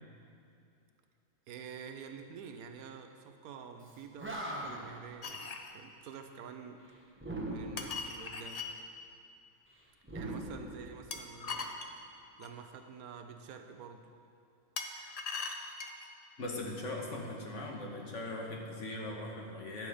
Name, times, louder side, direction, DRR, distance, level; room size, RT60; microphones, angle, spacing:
voice 1, 1.5-7.1 7.4-8.7 10.1-11.8 12.4-14.1, right 6 dB, 90° right, 6 dB, 1.2 m, -48 dB
Animal, 3.9-4.0 4.2-5.0 7.2-8.0 10.0-11.4, right 1 dB, 10° right, 0.8 m, -40 dB
sound 1, 5.2-5.7 7.8-8.7 11.1-12.6 14.8-16.1, left 4 dB, 85° left, 0.3 m, -40 dB
voice 2, 10.2-10.6 16.4-19.9, left 2 dB, 60° left, 0 dB, 1.5 m, -40 dB
11.0 x 7.0 x 4.9 m, 2.5 s
omnidirectional pair, 1.5 m